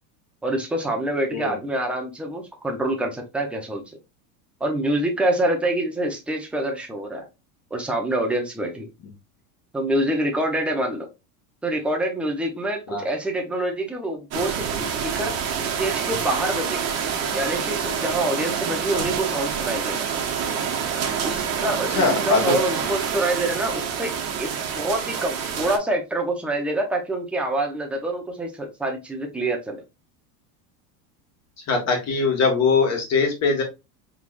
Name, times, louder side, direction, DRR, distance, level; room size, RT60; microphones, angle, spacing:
voice 1, 0.4-4.0 4.6-7.3 7.7-8.9 9.7-11.1 11.6-16.9 17.3-20.1 21.2-24.1 24.4-24.5 24.7-29.8, right 1 dB, 5° right, 1 dB, 0.6 m, -26 dB
sound 1, 14.3-25.8, right 7 dB, 30° right, 1.0 m, -27 dB
voice 2, 21.9-22.6 31.7-33.6, left 4 dB, 30° left, 2 dB, 1.7 m, -21 dB
4.7 x 3.7 x 2.5 m, 0.25 s
supercardioid pair, 155°, 48 cm